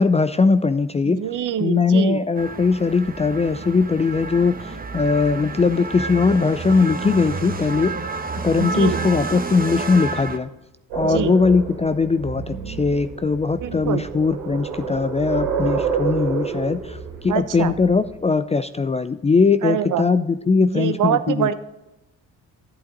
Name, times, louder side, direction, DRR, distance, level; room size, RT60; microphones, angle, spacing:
voice 1, 0.0-1.2 1.6-7.9 8.4-10.5 10.9-17.0 17.2-21.5, left 4 dB, 15° left, 13 dB, 0.4 m, -20 dB
voice 2, 1.0-2.2 8.6-9.1 11.0-11.3 13.6-14.1 17.3-17.8 19.6-20.1 20.6-21.5, right 9 dB, 50° right, 12 dB, 0.9 m, -24 dB
sound 1, 2.3-10.4, right 3 dB, 20° right, 1.1 m, -30 dB
sound 2, 10.9-18.1, right 6 dB, 85° right, 2.5 m, -29 dB
11.0 x 8.7 x 3.9 m, 0.96 s
hypercardioid pair, 55°, 40 cm